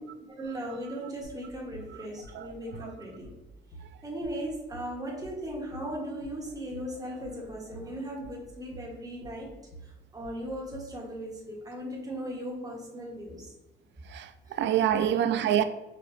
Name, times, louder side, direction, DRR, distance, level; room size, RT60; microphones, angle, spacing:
voice 1, 0.4-3.4 4.0-9.5 9.8-13.5 14.5-14.6 14.9-15.1, equal, 20° right, 1.3 m, -38 dB
sound 1, 1.2-11.0, right 1 dB, 70° left, 1.4 m, -49 dB
voice 2, 14.0-15.6, right 10 dB, 65° right, 0.4 m, -27 dB
5.0 x 2.5 x 3.1 m
cardioid pair, 90°, 20 cm